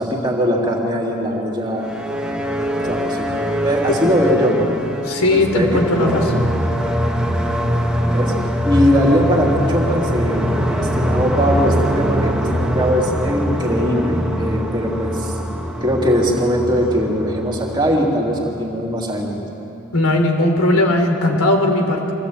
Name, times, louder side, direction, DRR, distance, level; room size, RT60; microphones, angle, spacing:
voice 1, 0.0-1.9 2.8-3.3 3.6-5.0 5.3-6.2 8.1-8.3 8.6-15.4 15.8-19.4, equal, 20° right, -2 dB, 3.1 m, -20 dB
sound 1, 1.7-18.6, equal, 5° right, 1.6 m, -23 dB
voice 2, 5.0-6.5 19.9-22.1, left 1 dB, 90° left, 3 dB, 3.3 m, -18 dB
24.0 x 16.0 x 8.8 m, 2.8 s
head